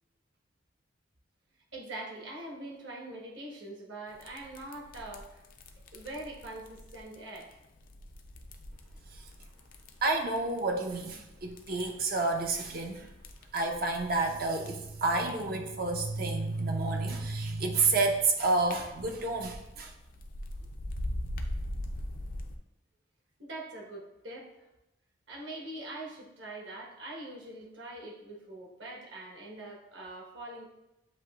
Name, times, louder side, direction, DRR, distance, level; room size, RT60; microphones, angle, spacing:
voice 1, 1.7-5.4 5.9-7.5 23.4-24.5 25.3-30.7, right 2 dB, 65° right, -3 dB, 1.1 m, -43 dB
sound 1, 4.1-22.6, left 1 dB, 45° left, 0.4 m, -43 dB
voice 2, 10.0-13.1 13.5-19.9, right 3 dB, 45° right, 3 dB, 0.5 m, -30 dB
7.6 x 2.8 x 2.3 m, 0.95 s
head